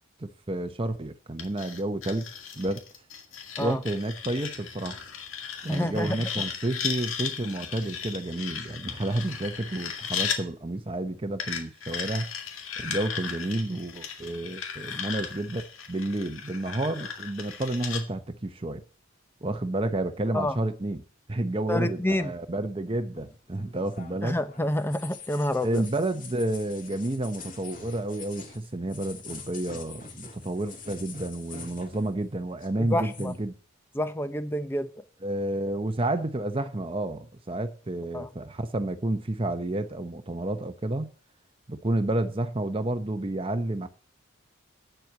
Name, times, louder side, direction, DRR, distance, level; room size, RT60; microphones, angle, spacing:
voice 1, 0.2-2.3 2.6-2.8 3.6-5.0 5.6-12.3 12.8-18.8 19.4-21.0 21.3-24.4 25.6-33.5 35.2-41.1 41.7-43.9, right 1 dB, 25° right, 0.8 m, -30 dB
sound 1, 1.4-10.4 11.4-18.0, left 7 dB, 75° left, 2.1 m, -36 dB
voice 2, 5.7-6.3 20.3-20.6 21.7-22.3 24.2-25.8 32.8-33.4 33.9-34.9 38.1-38.3, left 1 dB, 10° left, 0.7 m, -28 dB
sound 2, 23.2-32.3 32.5-33.4, left 5 dB, 40° left, 2.1 m, -46 dB
8.9 x 7.6 x 8.0 m
head